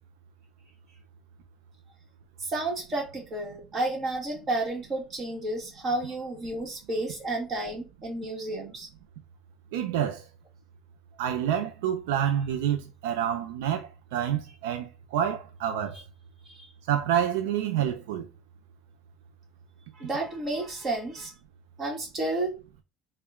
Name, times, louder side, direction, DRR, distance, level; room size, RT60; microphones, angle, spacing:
voice 1, 2.4-8.9 15.9-16.0 16.4-16.7 19.9-21.3 21.8-22.6, right 2 dB, 35° right, 1.4 m, -31 dB
voice 2, 9.7-10.2 11.2-16.0 16.9-18.3, right 10 dB, 90° right, 0.4 m, -28 dB
3.7 x 2.2 x 3.5 m
supercardioid pair, 115°, 0 cm